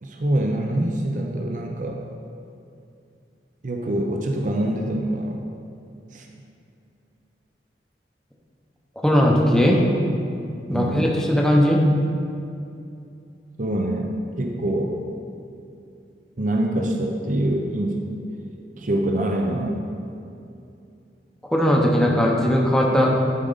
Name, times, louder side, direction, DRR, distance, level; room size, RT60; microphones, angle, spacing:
voice 1, 0.0-2.0 3.6-5.4 6.1-6.3 10.7-11.1 13.6-14.1 14.4-14.9 16.4-18.0 18.8-19.8, right 1 dB, 45° right, 2 dB, 0.7 m, -25 dB
voice 2, 9.0-9.8 10.7-11.8 21.5-23.3, equal, 5° left, -2 dB, 0.9 m, -18 dB
12.0 x 5.2 x 3.9 m, 2.6 s
head